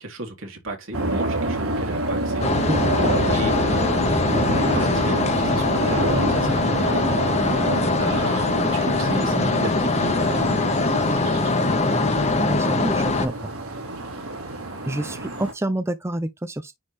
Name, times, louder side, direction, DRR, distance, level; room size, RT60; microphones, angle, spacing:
voice 1, 0.0-2.5 3.3-4.5 4.7-7.1 8.0-10.9, right 2 dB, 65° right, 2.9 m, -33 dB
sound 1, 0.9-15.5, right 2 dB, 80° right, 3.2 m, -28 dB
sound 2, 2.4-13.3, left 3 dB, 30° left, 0.9 m, -22 dB
voice 2, 12.4-13.4 14.9-16.7, right 1 dB, 10° right, 0.5 m, -27 dB
9.7 x 3.4 x 3.0 m
head